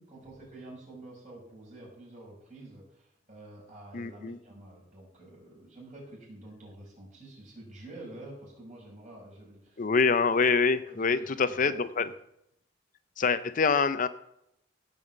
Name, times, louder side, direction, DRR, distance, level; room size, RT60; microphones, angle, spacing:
voice 1, 0.0-9.8 10.8-11.3 11.6-11.8 12.0-12.2, right 1 dB, 40° right, -3 dB, 5.6 m, -48 dB
voice 2, 3.9-4.4 9.8-12.1 13.2-14.1, left 5 dB, 45° left, 12 dB, 0.6 m, -25 dB
16.0 x 5.6 x 7.7 m, 0.78 s
head